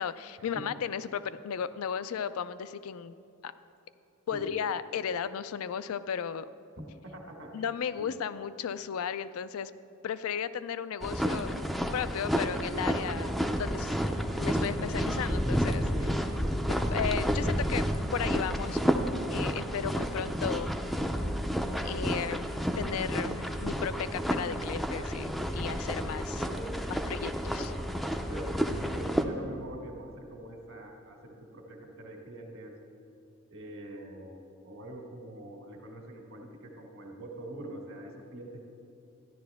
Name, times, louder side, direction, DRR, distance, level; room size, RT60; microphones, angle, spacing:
voice 1, 0.0-3.1 3.4-3.5 4.3-6.5 7.5-9.7 10.0-11.5 11.9-14.0 14.4-15.9 16.7-17.9 18.1-18.8 19.3-20.8 21.8-26.5 26.9-27.7, left 7 dB, 70° left, 15 dB, 0.4 m, -35 dB
voice 2, 7.0-7.7 8.0-8.1 15.9-16.2 26.4-27.1 28.3-32.7 33.5-34.4 34.6-38.6, right 1 dB, 60° right, 1 dB, 1.7 m, -43 dB
sound 1, 11.0-29.2, equal, ahead, 0.4 m, -30 dB
13.5 x 10.5 x 3.5 m, 2.7 s
head